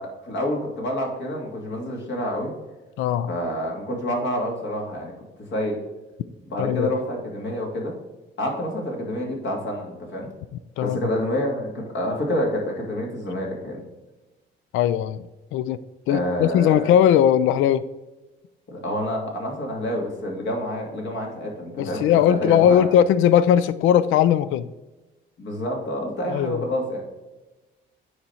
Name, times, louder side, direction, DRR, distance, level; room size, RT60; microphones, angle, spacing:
voice 1, 0.0-2.5 3.3-5.1 5.5-5.8 6.5-7.9 8.4-10.3 10.8-13.8 16.1-16.9 18.7-22.9 25.4-27.0, equal, 65° left, 0 dB, 2.6 m, -28 dB
voice 2, 3.0-3.3 6.6-6.9 10.8-11.0 14.7-15.8 16.1-17.8 21.8-24.6 26.3-26.6, left 10 dB, 90° left, 15 dB, 0.4 m, -19 dB
9.3 x 4.3 x 4.4 m, 1.1 s
cardioid pair, 90°, 20 cm